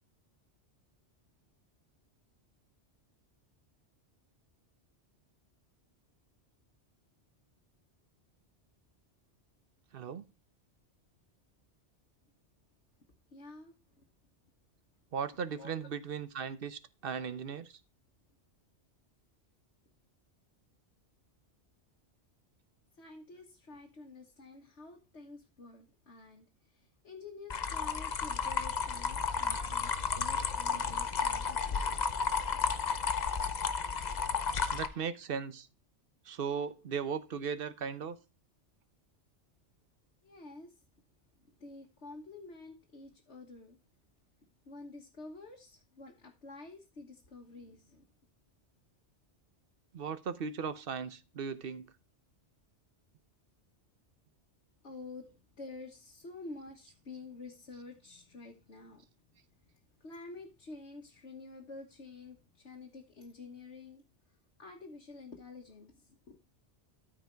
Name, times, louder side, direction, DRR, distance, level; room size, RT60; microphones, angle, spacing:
voice 1, 9.9-10.2 15.1-17.8 29.2-29.8 34.3-35.7 36.2-38.2 49.9-51.9, right 6 dB, 55° right, 1.0 m, -38 dB
voice 2, 13.3-14.1 15.6-15.9 22.9-32.1 40.2-40.8 41.6-43.8 44.7-48.1 54.8-55.3 55.6-59.1 60.0-64.0 64.6-66.4, left 3 dB, 75° left, 1.7 m, -49 dB
sound 1, 27.5-34.9, left 5 dB, 45° left, 0.8 m, -32 dB
13.0 x 5.0 x 4.5 m
omnidirectional pair, 1.2 m